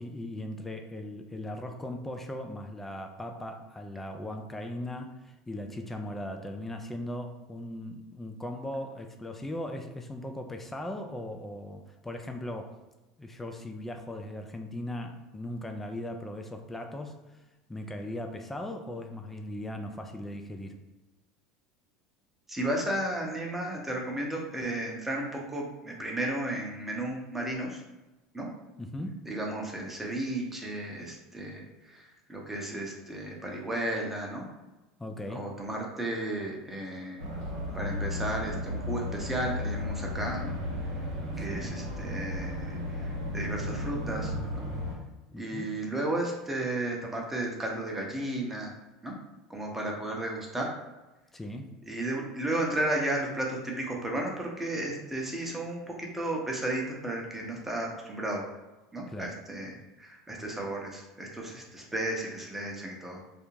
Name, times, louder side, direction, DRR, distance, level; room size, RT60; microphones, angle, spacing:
voice 1, 0.0-12.8 13.2-17.4 17.7-20.8 28.8-29.3 35.0-35.5 41.4-41.8 45.3-45.8 51.3-51.7 59.1-59.4, left 1 dB, 10° left, 4 dB, 0.3 m, -38 dB
voice 2, 22.5-27.8 28.3-28.5 29.3-31.6 31.9-34.4 35.3-37.3 37.7-40.6 41.4-44.7 45.3-48.7 49.0-49.1 49.5-50.7 51.9-58.4 58.9-59.7 60.0-63.2, right 1 dB, 10° right, -1 dB, 0.7 m, -33 dB
sound 1, 37.2-45.0, left 1 dB, 85° right, 0.7 m, -34 dB
2.4 x 2.0 x 3.1 m, 1.1 s
hypercardioid pair, 80°, 2 cm